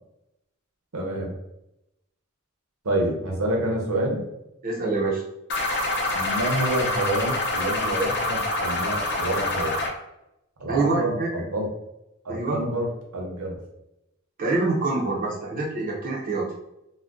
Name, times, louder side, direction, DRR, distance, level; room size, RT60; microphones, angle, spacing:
voice 1, 0.9-1.3 2.8-4.2 6.1-9.7 10.6-11.7 12.2-13.6, right 1 dB, 80° right, -1 dB, 0.9 m, -28 dB
voice 2, 4.6-5.2 10.7-11.3 12.3-12.6 14.4-16.5, right 3 dB, 40° right, -3 dB, 0.5 m, -25 dB
sound 1, 5.5-9.9, left 2 dB, 55° left, 0.6 m, -26 dB
2.5 x 2.1 x 3.5 m, 0.88 s
head